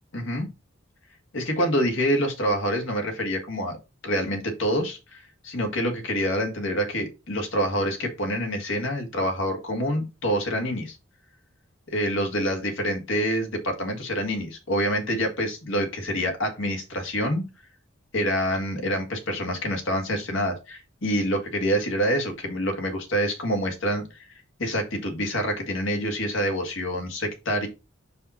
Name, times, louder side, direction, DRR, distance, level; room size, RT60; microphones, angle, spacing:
voice 1, 0.1-0.5 1.3-3.8 4.0-11.0 11.9-17.4 18.1-24.3 24.6-27.7, equal, 70° left, 4 dB, 1.9 m, -26 dB
5.6 x 5.4 x 4.3 m, 0.28 s
head